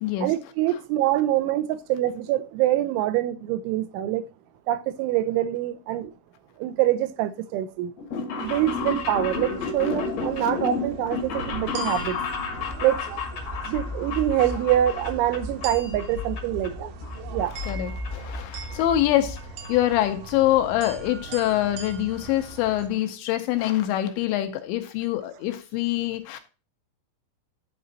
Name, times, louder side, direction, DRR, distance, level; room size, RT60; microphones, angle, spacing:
voice 1, 0.2-4.2 4.7-6.1 6.6-7.9 8.4-12.2 12.8-13.0 13.7-16.9 17.3-17.5, right 13 dB, 85° right, 3.0 m, -25 dB
sound 1, 8.0-15.7 16.0-16.7 17.0-18.1 18.3-18.4 19.4-19.5 19.6-19.7 20.0-20.1 20.4-20.7 21.1-21.2 21.3-21.4, left 4 dB, 65° left, 1.6 m, -32 dB
sound 2, 8.4-22.9, right 4 dB, 70° right, 2.2 m, -41 dB
sound 3, 12.6-20.2, left 2 dB, 35° left, 0.9 m, -37 dB
voice 2, 17.5-19.4 19.7-26.4, left 13 dB, 80° left, 2.8 m, -25 dB
11.5 x 4.3 x 4.1 m
omnidirectional pair, 5.6 m